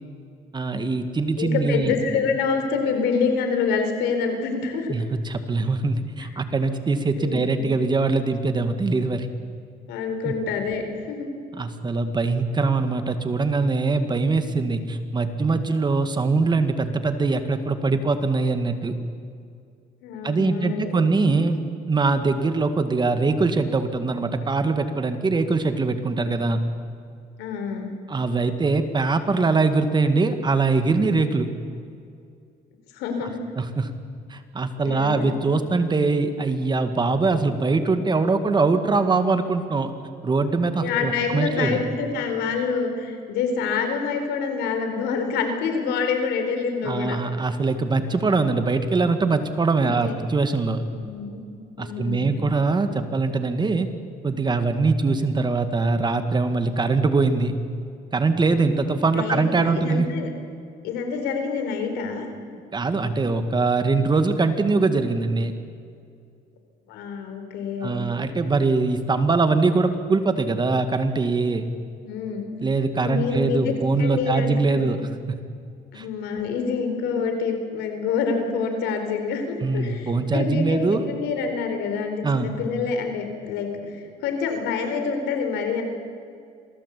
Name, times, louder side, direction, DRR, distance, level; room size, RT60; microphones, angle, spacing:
voice 1, 0.5-1.9 4.9-9.3 10.2-10.3 11.6-18.9 20.2-21.6 21.9-26.6 28.1-31.5 33.2-33.3 33.6-33.9 34.3-39.9 40.2-41.8 46.8-50.8 51.8-53.9 54.2-57.5 58.1-60.1 62.7-65.5 67.8-71.7 72.6-75.0 75.3-75.4 75.9-76.0 79.6-81.0 82.2-82.5, right 3 dB, 25° right, 8 dB, 2.1 m, -22 dB
voice 2, 1.4-4.9 7.2-7.5 9.9-11.3 20.0-21.1 27.4-28.0 32.9-33.4 34.8-35.3 40.8-47.2 49.8-50.1 50.9-51.4 51.8-52.4 59.1-60.3 60.8-62.3 66.9-68.1 72.0-72.5 73.0-74.8 75.9-85.8, left 5 dB, 90° left, 5 dB, 4.3 m, -27 dB
27.0 x 18.5 x 8.5 m, 2.4 s
cardioid pair, 110°, 17 cm